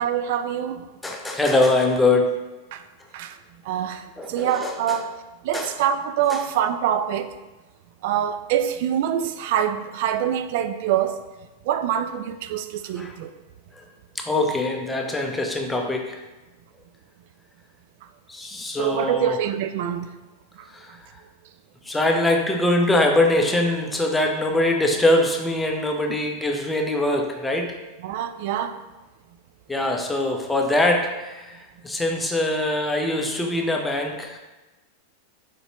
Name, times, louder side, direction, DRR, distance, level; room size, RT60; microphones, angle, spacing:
voice 1, 0.0-0.9 2.7-2.8 3.1-3.4 3.6-5.2 5.4-7.3 8.0-11.2 11.7-13.3 18.8-20.1 20.6-21.0 26.1-26.2 28.0-28.8, right 9 dB, 50° right, 0.3 m, -25 dB
voice 2, 1.0-2.4 4.2-4.8 5.5-5.7 6.3-6.4 13.0-13.1 14.2-16.2 18.3-19.4 20.8-21.0 21.9-27.7 29.7-31.5 31.8-34.4, left 2 dB, 10° left, 0.6 m, -22 dB
4.5 x 4.0 x 2.9 m
figure-of-eight pair, 90°, 0 cm